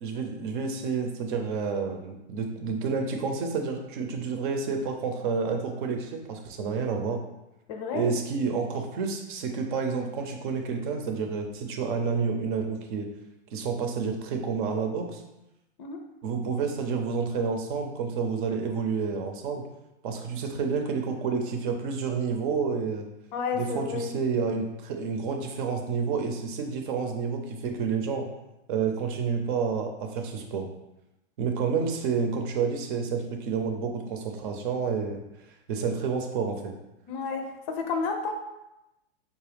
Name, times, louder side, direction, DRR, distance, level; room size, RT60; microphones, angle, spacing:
voice 1, 0.0-7.2 7.9-13.1 13.5-15.2 16.2-19.6 20.0-23.0 23.5-28.3 28.7-30.7 31.4-35.2 35.7-36.7, right 5 dB, 50° right, 4 dB, 0.7 m, -29 dB
voice 2, 7.7-8.2 15.8-16.0 23.3-24.1 37.1-38.4, left 5 dB, 40° left, 4 dB, 0.6 m, -31 dB
4.8 x 2.3 x 3.4 m, 0.93 s
hypercardioid pair, 125°, 33 cm